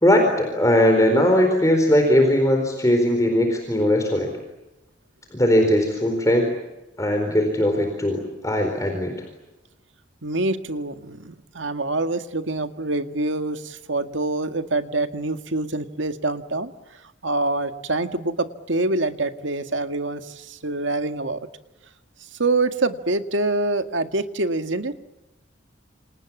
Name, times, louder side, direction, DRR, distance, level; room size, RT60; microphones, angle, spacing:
voice 1, 0.0-4.3 5.3-6.5 7.0-9.1, left 1 dB, 15° left, 4 dB, 4.3 m, -19 dB
voice 2, 10.2-16.7 17.2-21.5 22.4-24.9, right 2 dB, 85° right, 8 dB, 1.9 m, -25 dB
28.5 x 28.0 x 7.3 m, 1.0 s
head